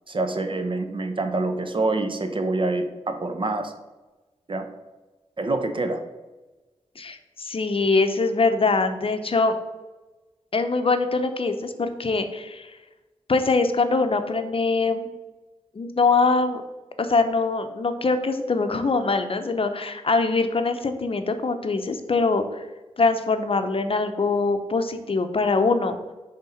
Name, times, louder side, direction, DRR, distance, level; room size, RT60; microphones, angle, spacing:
voice 1, 0.1-3.7 4.5-4.7 5.4-6.0, right 2 dB, 45° right, 7 dB, 0.8 m, -26 dB
voice 2, 7.0-9.5 10.5-12.7 13.3-15.1 15.8-16.6 17.0-22.6 23.0-26.0, left 3 dB, 50° left, 8 dB, 0.7 m, -23 dB
5.3 x 3.6 x 5.5 m, 1.1 s
cardioid pair, 45°, 12 cm